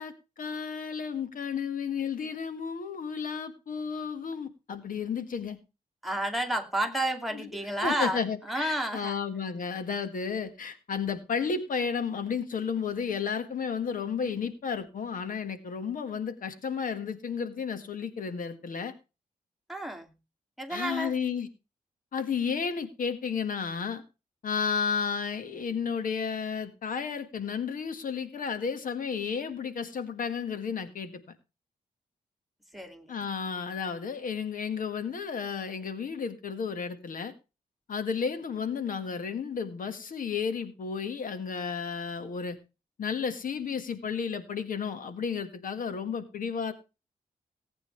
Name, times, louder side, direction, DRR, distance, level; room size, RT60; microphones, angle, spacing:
voice 1, 0.0-5.6 7.3-18.9 20.7-21.5 22.1-24.0 24.4-31.2 33.1-37.3 37.9-42.6 43.0-46.7, left 6 dB, 65° left, 10 dB, 1.8 m, -32 dB
voice 2, 6.0-9.2 19.7-20.1 20.6-21.1 32.7-33.1, right 1 dB, ahead, 3 dB, 2.6 m, -31 dB
18.5 x 9.0 x 3.3 m, 0.29 s
wide cardioid pair, 140°, 15 cm